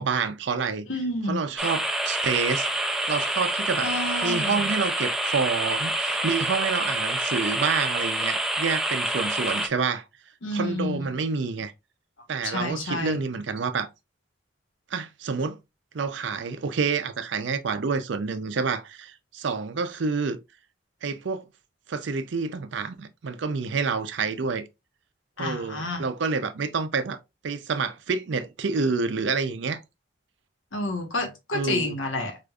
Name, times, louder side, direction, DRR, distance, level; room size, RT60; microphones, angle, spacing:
voice 1, 0.0-0.9 1.3-2.7 3.1-3.9 4.2-10.0 10.5-11.7 12.3-13.9 14.9-15.6 15.9-20.4 21.0-21.5 21.9-24.6 25.4-27.2 27.4-29.8 31.5-32.0, right 5 dB, 65° right, 0.5 m, -28 dB
voice 2, 0.9-1.4 3.8-4.7 10.4-11.0 12.4-13.2 25.4-26.0 30.7-32.4, left 2 dB, 80° left, 1.1 m, -29 dB
sound 1, 1.6-9.7, right 1 dB, 5° right, 0.3 m, -27 dB
4.9 x 2.4 x 2.3 m
head